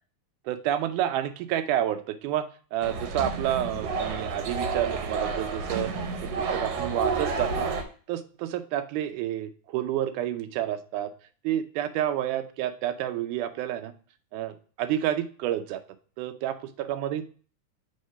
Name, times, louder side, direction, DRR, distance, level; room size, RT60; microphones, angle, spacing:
voice 1, 0.5-5.9 6.3-7.7 8.1-11.1 11.4-13.9 14.3-15.8 16.2-17.2, right 11 dB, 90° right, 10 dB, 2.1 m, -29 dB
sound 1, 2.8-7.8, right 4 dB, 65° right, 1.8 m, -30 dB
6.5 x 3.7 x 5.5 m, 0.41 s
omnidirectional pair, 3.4 m